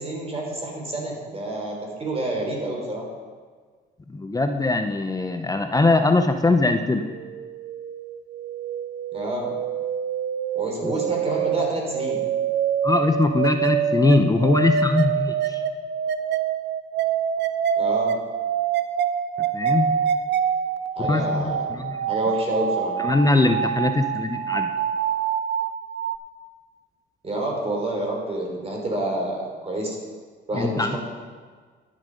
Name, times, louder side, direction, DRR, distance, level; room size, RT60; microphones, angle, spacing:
voice 1, 0.0-3.0 9.1-9.5 10.5-12.2 17.8-18.2 21.0-22.9 27.2-30.0 30.5-31.0, right 1 dB, 30° right, -1 dB, 3.3 m, -28 dB
voice 2, 4.1-7.0 10.8-10.9 12.8-15.6 19.5-19.9 21.0-22.1 23.0-24.7 30.5-31.0, left 2 dB, 20° left, 6 dB, 0.6 m, -21 dB
sound 1, 7.0-26.2, right 7 dB, 60° right, 0.6 m, -26 dB
11.0 x 7.4 x 5.1 m, 1.5 s
cardioid pair, 90°, 20 cm